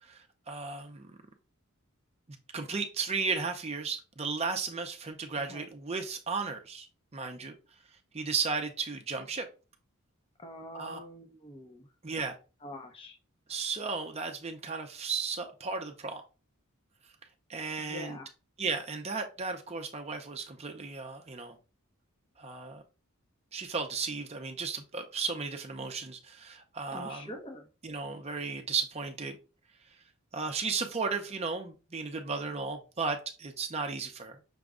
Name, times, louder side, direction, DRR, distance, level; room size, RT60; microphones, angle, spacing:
voice 1, 0.0-1.2 2.5-6.9 7.1-7.6 8.1-9.5 10.7-11.0 12.0-12.4 13.5-16.2 17.5-18.2 18.6-21.6 22.4-22.8 23.5-27.4 27.8-29.4 30.3-34.5, right 4 dB, 30° right, 0.6 m, -35 dB
voice 2, 10.4-11.9 12.6-13.2 17.8-18.3 26.9-27.7, left 1 dB, 25° left, 0.8 m, -44 dB
6.0 x 2.2 x 3.6 m
head